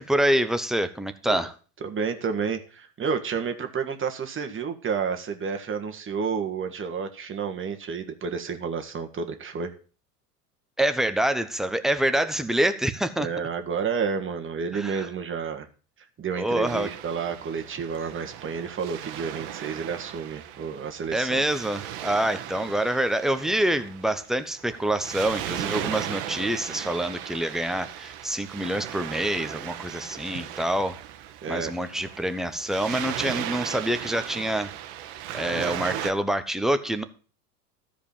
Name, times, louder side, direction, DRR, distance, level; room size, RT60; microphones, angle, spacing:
voice 1, 0.0-1.5 10.8-13.3 14.7-15.1 16.4-16.9 21.1-31.0 31.5-34.7 35.3-37.0, right 1 dB, ahead, 9 dB, 0.9 m, -26 dB
voice 2, 1.8-9.7 13.2-15.7 16.2-21.4 31.4-31.7, right 6 dB, 25° right, 5 dB, 1.6 m, -30 dB
Waves surf, 16.6-36.1, right 11 dB, 55° right, 1.3 m, -37 dB
13.5 x 5.2 x 7.2 m, 0.39 s
hypercardioid pair, 95°, 46 cm